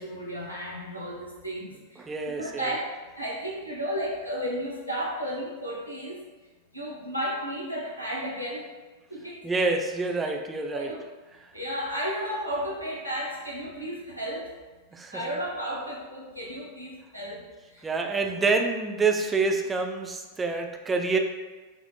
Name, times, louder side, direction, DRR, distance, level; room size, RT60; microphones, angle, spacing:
voice 1, 0.0-2.9 3.2-6.2 6.7-8.7 9.1-9.4 10.7-11.0 11.5-14.5 15.1-17.4 17.7-17.9, equal, 90° left, -4 dB, 0.8 m, -33 dB
voice 2, 2.0-2.7 9.4-10.9 14.9-15.3 17.8-21.2, right 4 dB, 15° right, 3 dB, 0.4 m, -27 dB
5.5 x 2.0 x 3.0 m, 1.3 s
figure-of-eight pair, 90°, 0 cm